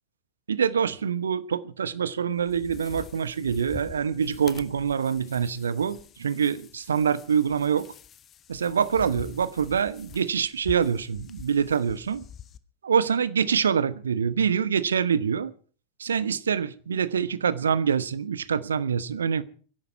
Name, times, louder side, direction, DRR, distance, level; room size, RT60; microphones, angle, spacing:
voice 1, 0.5-7.9 8.5-12.2 12.8-15.5 16.0-19.4, right 7 dB, 70° right, 15 dB, 1.0 m, -25 dB
sound 1, 2.3-12.6, left 9 dB, 30° left, 1.1 m, -46 dB
24.5 x 11.0 x 4.6 m, 0.42 s
figure-of-eight pair, 90°, 0 cm